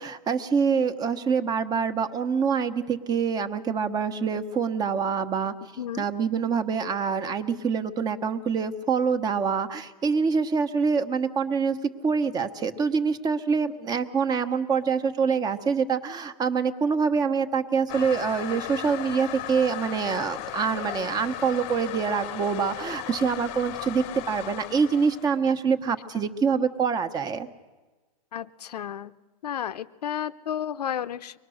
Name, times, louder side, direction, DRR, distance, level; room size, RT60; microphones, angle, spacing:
voice 1, 0.0-5.5 6.0-11.8 12.0-27.5, right 6 dB, 20° right, 9 dB, 1.1 m, -25 dB
Toilet flush, 17.9-25.4, left 13 dB, 35° left, 0.9 m, -36 dB
voice 2, 28.3-29.1 29.4-31.4, left 9 dB, 90° left, 13 dB, 0.8 m, -32 dB
24.0 x 20.0 x 6.4 m, 1.3 s
hypercardioid pair, 140°, 20 cm